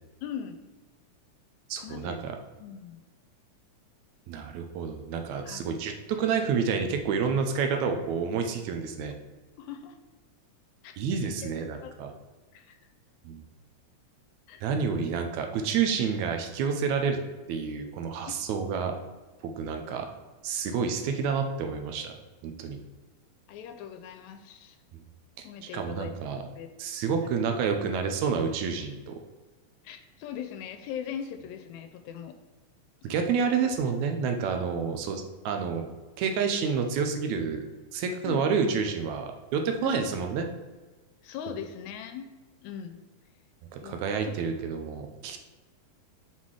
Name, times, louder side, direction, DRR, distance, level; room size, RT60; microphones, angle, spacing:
voice 1, 0.2-0.6 1.8-2.2 2.6-3.0 5.4-5.6 9.6-10.0 10.8-11.0 11.2-11.5 11.8-12.2 12.5-12.8 14.5-14.7 18.4-18.5 23.5-24.8 25.4-26.1 26.5-26.7 29.8-32.4 33.0-33.1 38.2-38.5 39.8-40.0 41.2-42.3 42.6-43.0 43.8-44.0 44.2-44.3, left 8 dB, 80° left, 8 dB, 1.8 m, -40 dB
voice 2, 1.7-2.4 4.3-9.1 11.0-12.1 13.3-13.4 14.6-17.2 17.5-18.9 19.6-20.1 20.4-22.1 22.4-22.8 25.7-26.4 26.8-29.1 33.0-35.9 36.2-37.7 37.9-40.5 43.7-45.4, right 6 dB, 80° right, 5 dB, 2.0 m, -29 dB
5.6 x 4.1 x 4.7 m, 1.3 s
omnidirectional pair, 3.4 m